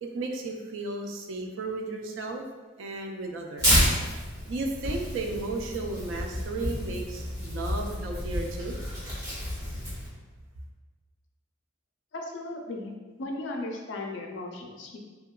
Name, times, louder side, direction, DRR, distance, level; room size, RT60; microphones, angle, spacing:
voice 1, 0.0-2.4 2.8-3.8 4.5-8.7, right 2 dB, 80° right, 3 dB, 0.3 m, -34 dB
Tearing, 3.6-10.1, equal, 20° right, 0.9 m, -29 dB
voice 2, 12.1-15.0, left 2 dB, 65° left, 1 dB, 0.4 m, -36 dB
2.7 x 2.2 x 2.2 m, 1.3 s
head